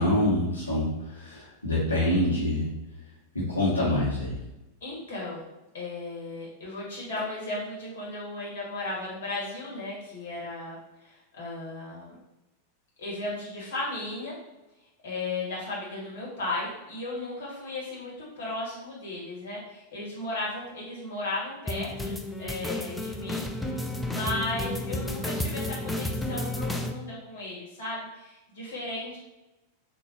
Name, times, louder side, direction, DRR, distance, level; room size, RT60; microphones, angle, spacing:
voice 1, 0.0-2.7 3.3-4.4, left 1 dB, 80° left, -10 dB, 1.1 m, -26 dB
voice 2, 4.8-5.4 5.7-12.1 13.0-14.3 15.0-29.2, left 2 dB, 60° left, -5 dB, 1.3 m, -35 dB
sound 1, 21.7-26.9, left 1 dB, 5° left, 0.3 m, -32 dB
3.7 x 2.4 x 2.9 m, 0.98 s
figure-of-eight pair, 90°, 0 cm